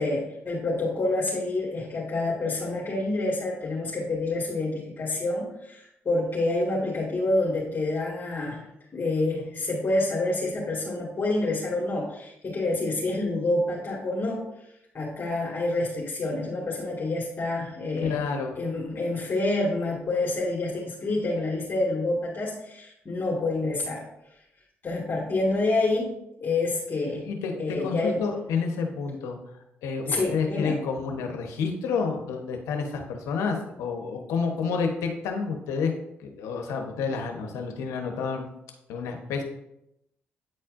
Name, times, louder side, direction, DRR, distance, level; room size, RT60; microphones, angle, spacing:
voice 1, 0.0-8.6 8.9-14.4 14.9-18.2 18.6-24.0 24.8-26.1 26.4-27.3 27.6-28.2 30.1-30.8, left 2 dB, 45° left, -5 dB, 1.9 m, -27 dB
voice 2, 18.0-18.6 27.3-29.4 29.8-35.9 36.2-38.4 38.9-39.4, left 5 dB, 85° left, 3 dB, 0.9 m, -29 dB
9.1 x 4.3 x 2.5 m, 0.84 s
supercardioid pair, 65°, 5 cm